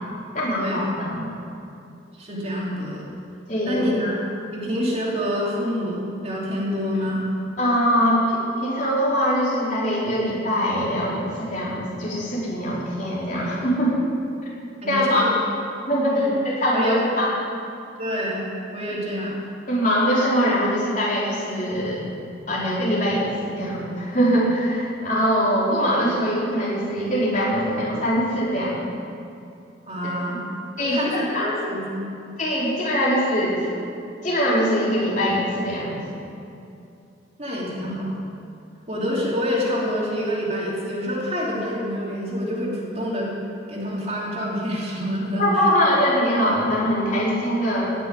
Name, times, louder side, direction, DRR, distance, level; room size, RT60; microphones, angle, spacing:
voice 1, 0.3-1.3 3.5-3.9 7.6-14.0 14.4-14.5 14.9-15.3 15.9-17.3 19.7-22.0 22.5-28.7 30.3-30.4 30.8-31.5 32.4-33.8 34.2-36.0 45.4-47.9, equal, 40° left, -7 dB, 4.2 m, -22 dB
voice 2, 2.2-3.1 3.6-4.2 4.5-7.3 14.8-15.4 16.0-16.3 16.7-17.0 18.0-18.4 18.7-19.4 29.9-30.4 30.8-32.1 37.4-38.2 38.9-43.3 43.7-45.7, equal, 30° right, -4 dB, 2.9 m, -27 dB
17.5 x 6.8 x 9.6 m, 2.6 s
head